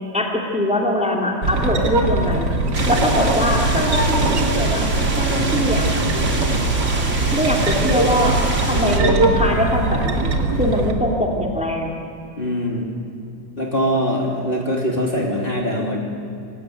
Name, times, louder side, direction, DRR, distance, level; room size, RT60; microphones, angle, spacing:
voice 1, 0.1-2.5 2.9-4.9 5.2-5.9 7.3-8.4 8.7-11.9, left 1 dB, 5° right, -1 dB, 2.9 m, -22 dB
sound 1, 1.4-10.9, right 2 dB, 60° right, 2.5 m, -21 dB
sound 2, 2.7-9.0, right 2 dB, 40° right, 2.9 m, -26 dB
voice 2, 12.4-12.9 13.6-16.0, equal, 30° left, -2 dB, 3.2 m, -22 dB
27.0 x 17.0 x 9.4 m, 2.5 s
omnidirectional pair, 2.0 m